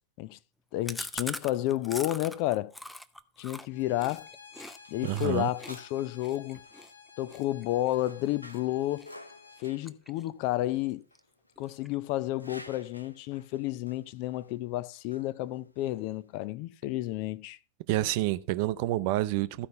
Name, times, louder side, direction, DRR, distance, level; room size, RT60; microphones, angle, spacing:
voice 1, 0.7-2.7 3.4-4.3 4.9-6.6 7.2-9.1 9.6-11.0 11.6-17.6, left 15 dB, 45° left, 0.5 m, -31 dB
Chewing mastication, 0.9-4.8 5.1-5.3 5.6-8.6 9.0-9.3 9.6-10.5 10.8-10.9 11.2-11.3 11.6-12.1, left 1 dB, 5° left, 0.6 m, -42 dB
Bowed string instrument, 3.7-9.6, left 6 dB, 70° left, 1.5 m, -53 dB
sound 1, 4.1-16.4, left 1 dB, 85° left, 0.8 m, -54 dB
voice 2, 5.0-5.5 17.9-19.7, right 15 dB, 45° right, 0.6 m, -28 dB
14.0 x 5.2 x 5.5 m
figure-of-eight pair, 90°, 0 cm